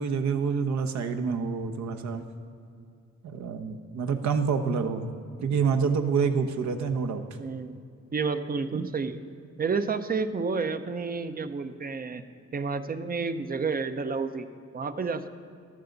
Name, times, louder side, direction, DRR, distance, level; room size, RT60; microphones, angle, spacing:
voice 1, 0.0-2.2 3.2-5.1 5.4-7.2, right 5 dB, 65° right, 7 dB, 1.0 m, -27 dB
voice 2, 7.4-7.8 8.1-9.2 9.6-12.2 12.5-14.5 14.7-15.3, right 4 dB, 30° right, 10 dB, 0.7 m, -30 dB
14.0 x 12.0 x 4.0 m, 2.4 s
cardioid pair, 90°, 30 cm